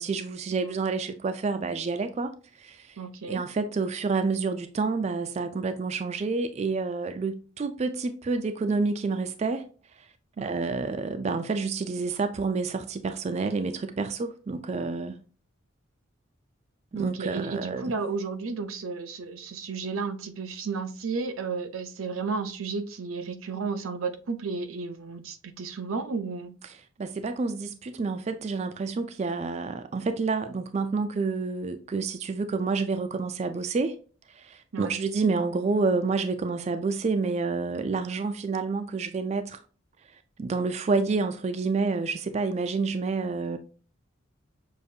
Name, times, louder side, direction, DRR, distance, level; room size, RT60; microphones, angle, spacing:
voice 1, 0.0-2.3 2.6-3.0 3.3-9.7 10.0-10.1 10.4-15.2 16.9-17.9 27.0-34.0 34.3-39.6 40.4-43.6, right 4 dB, 30° right, 0.3 m, -29 dB
voice 2, 3.0-3.4 10.4-10.5 16.9-26.5 34.7-35.0, right 4 dB, 85° right, 0.5 m, -33 dB
6.4 x 2.5 x 2.7 m
head